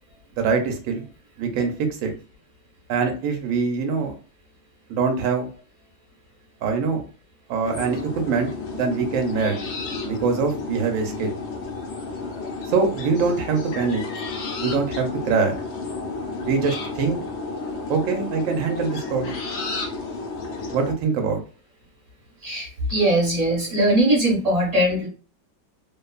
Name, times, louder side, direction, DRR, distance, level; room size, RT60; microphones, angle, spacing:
voice 1, 0.4-1.0 1.4-2.1 2.9-4.1 4.9-5.5 6.6-7.0 7.5-9.6 10.0-11.4 12.7-14.0 14.6-15.5 16.4-17.2 17.9-19.4 20.7-21.4, right 5 dB, 60° right, 4 dB, 0.9 m, -23 dB
sound 1, 7.6-20.9, left 3 dB, 75° left, 0.6 m, -32 dB
voice 2, 22.4-25.1, right 1 dB, 25° right, -4 dB, 1.1 m, -20 dB
2.8 x 2.3 x 2.3 m, 0.38 s
omnidirectional pair, 2.0 m